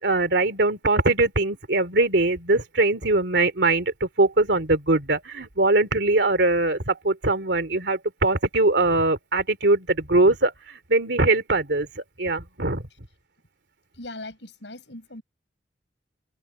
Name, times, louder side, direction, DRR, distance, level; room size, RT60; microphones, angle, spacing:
voice 1, 0.0-12.8, right 2 dB, 75° right, 2.9 m, -22 dB
voice 2, 13.9-15.2, left 2 dB, 85° left, 7.5 m, -39 dB
open air
head